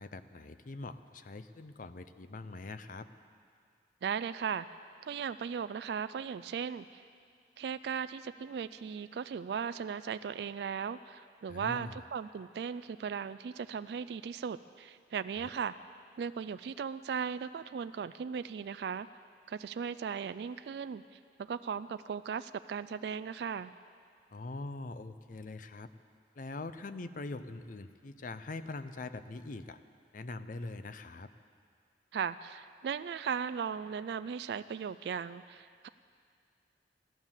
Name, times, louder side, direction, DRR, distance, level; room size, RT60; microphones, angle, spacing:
voice 1, 0.0-3.1 11.5-12.0 15.4-15.5 24.3-25.9 26.4-29.8 30.1-31.3, left 2 dB, 50° left, 11 dB, 0.6 m, -43 dB
voice 2, 4.0-4.7 5.0-7.0 7.6-15.7 16.2-19.1 19.5-21.0 21.4-23.7 32.1-35.9, right 7 dB, 65° right, 12 dB, 0.3 m, -37 dB
14.5 x 12.0 x 7.3 m, 2.2 s
head